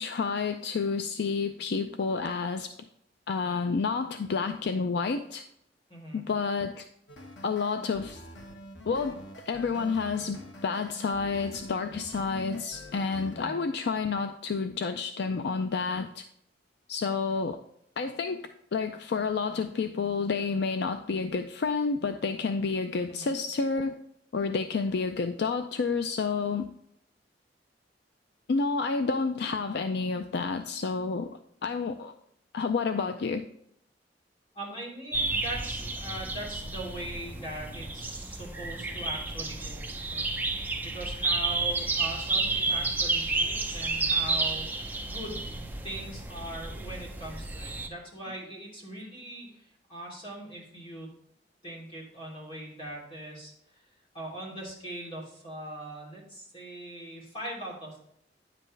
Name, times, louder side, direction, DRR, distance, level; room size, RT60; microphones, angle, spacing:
voice 1, 0.0-2.7 3.3-5.4 6.1-6.9 7.4-8.2 8.9-9.2 9.5-16.2 16.9-17.6 18.0-24.0 24.3-26.7 28.5-31.3 31.6-32.1 32.5-33.4, left 4 dB, 65° left, 8 dB, 0.4 m, -30 dB
voice 2, 5.9-6.2 13.3-13.6 23.1-23.3 34.5-40.3 40.8-45.5 45.8-51.1 51.6-53.8 54.1-58.1, right 1 dB, 30° left, -3 dB, 3.2 m, -41 dB
sound 1, 7.1-13.3, equal, 90° left, 1.3 m, -46 dB
sound 2, 35.1-47.9, right 3 dB, 10° right, 0.7 m, -31 dB
9.9 x 7.6 x 3.2 m, 0.72 s
head